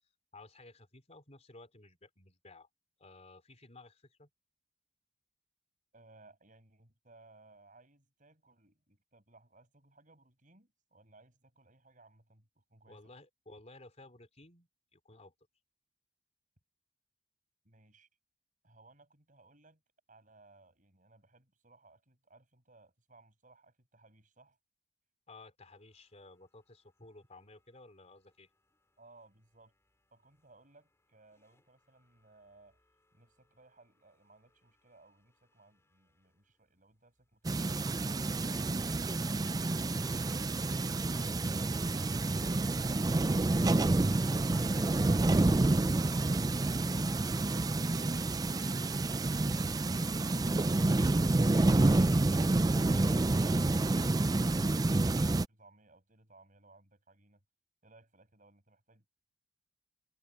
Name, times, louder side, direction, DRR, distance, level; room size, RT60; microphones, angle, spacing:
voice 1, 0.3-2.7 3.0-4.3 12.9-15.3 25.3-28.5, left 2 dB, 35° left, 3.7 m, -55 dB
voice 2, 5.9-13.1 17.6-18.1 18.6-19.8 20.1-24.6 29.0-29.7 30.1-32.8 33.1-38.5 53.6-57.4 57.8-59.1, right 2 dB, 40° right, 6.9 m, -63 dB
sound 1, 25.7-45.2, left 1 dB, 15° left, 6.9 m, -65 dB
sound 2, 37.4-55.5, right 2 dB, 20° right, 0.4 m, -29 dB
head